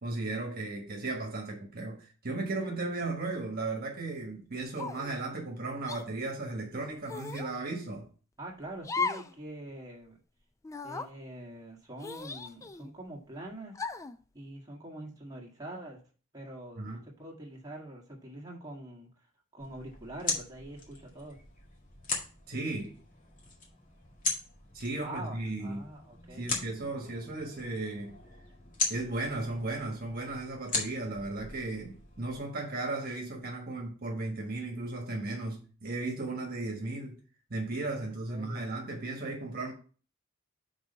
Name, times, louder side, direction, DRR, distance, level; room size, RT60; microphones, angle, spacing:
voice 1, 0.0-8.1 16.8-17.0 22.5-23.0 24.7-25.8 26.3-28.2 28.9-37.2 37.5-39.7, right 2 dB, 50° right, 1.4 m, -35 dB
sound 1, 4.8-5.2 5.9-6.0 7.1-7.5 8.8-9.3 9.7-9.8 10.6-11.1 12.0-12.9 13.7-14.2, left 4 dB, 15° left, 0.3 m, -36 dB
voice 2, 8.4-10.2 10.8-13.7 14.3-16.0 16.3-19.1 19.5-21.4 25.0-26.5 38.0-38.7, right 1 dB, 20° right, 1.6 m, -44 dB
sound 2, 19.6-32.4, left 3 dB, 40° left, 1.9 m, -39 dB
6.1 x 4.0 x 5.5 m
head